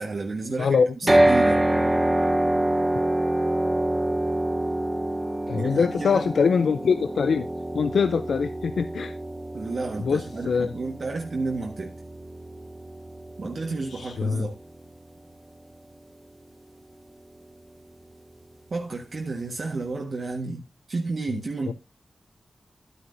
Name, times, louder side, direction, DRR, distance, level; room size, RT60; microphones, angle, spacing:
voice 1, 0.0-1.7 5.5-6.2 9.5-11.9 13.4-14.6 18.7-20.6 20.9-21.7, right 3 dB, 60° right, 1.5 m, -31 dB
sound 1, 1.1-15.2, right 1 dB, 20° right, 1.1 m, -26 dB
voice 2, 5.5-7.5 7.7-9.1 10.0-10.7 13.9-14.5 21.7-21.8, left 5 dB, 85° left, 0.5 m, -23 dB
11.0 x 9.5 x 2.6 m
cardioid pair, 70°, 0 cm